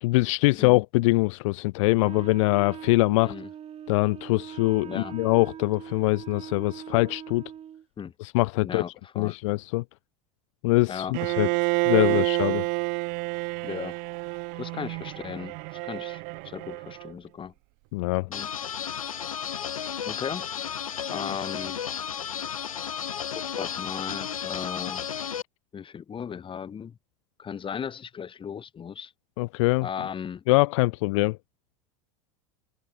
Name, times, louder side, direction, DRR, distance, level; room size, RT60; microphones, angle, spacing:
voice 1, 0.0-3.3 3.9-7.4 8.2-8.8 9.2-9.8 10.6-11.5 11.9-12.6 17.9-18.3 29.4-29.9 30.5-31.4, left 23 dB, 65° left, 0.9 m, -23 dB
Wind instrument woodwind instrument, 2.0-7.8, right 9 dB, 35° right, 5.2 m, -41 dB
voice 2, 4.8-5.2 8.0-8.1 8.6-9.4 10.9-11.4 12.1-12.2 13.6-14.0 14.6-17.5 18.3-18.5 20.1-20.5 21.1-21.8 23.5-25.0 25.7-27.0 27.4-29.1 29.8-30.4, left 7 dB, 30° left, 5.2 m, -36 dB
Bowed string instrument, 11.1-17.1, right 33 dB, 60° right, 1.8 m, -29 dB
sound 1, 18.3-25.4, left 8 dB, 85° left, 2.0 m, -33 dB
hypercardioid pair, 85°, 17 cm